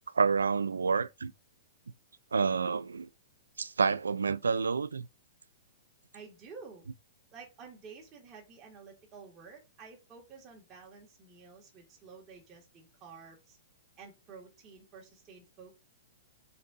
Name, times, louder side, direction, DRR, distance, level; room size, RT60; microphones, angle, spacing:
voice 1, 0.1-1.3 2.3-3.1 3.6-5.1, right 5 dB, 90° right, 0.3 m, -28 dB
voice 2, 6.1-6.9 7.3-13.6 14.0-15.8, right 5 dB, 30° right, 1.7 m, -51 dB
5.3 x 3.9 x 2.5 m
hypercardioid pair, 120°, 0 cm